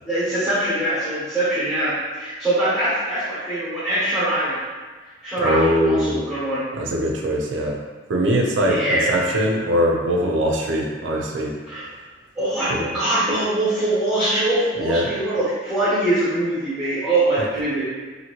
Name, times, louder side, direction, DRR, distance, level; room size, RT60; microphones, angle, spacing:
voice 1, 0.0-4.6 5.2-6.7 8.7-9.1 11.7-11.9 12.4-17.8, right 1 dB, 5° right, -13 dB, 0.9 m, -23 dB
voice 2, 5.4-6.2 6.7-7.8 8.1-11.5 12.7-13.0 14.8-15.1, equal, 75° right, -1 dB, 0.5 m, -21 dB
2.8 x 2.6 x 2.9 m, 1.4 s
head